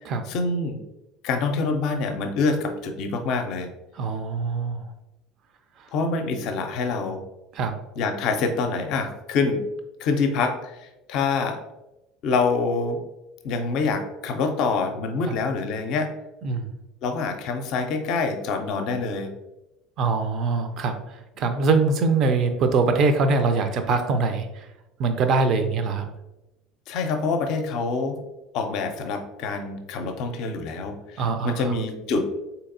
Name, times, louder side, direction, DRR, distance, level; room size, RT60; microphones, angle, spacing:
voice 1, 0.3-0.8 1.2-3.7 5.9-7.2 8.0-9.6 10.0-11.6 12.2-13.0 13.4-16.1 17.0-19.3 26.9-28.2 28.5-32.3, left 4 dB, 55° left, 6 dB, 0.5 m, -26 dB
voice 2, 3.9-4.8 7.5-7.8 15.3-15.4 16.4-16.7 20.0-21.0 21.4-24.7 25.0-26.1 31.2-31.8, right 4 dB, 50° right, 7 dB, 0.5 m, -23 dB
4.0 x 2.8 x 2.5 m, 0.96 s
figure-of-eight pair, 70°, 0 cm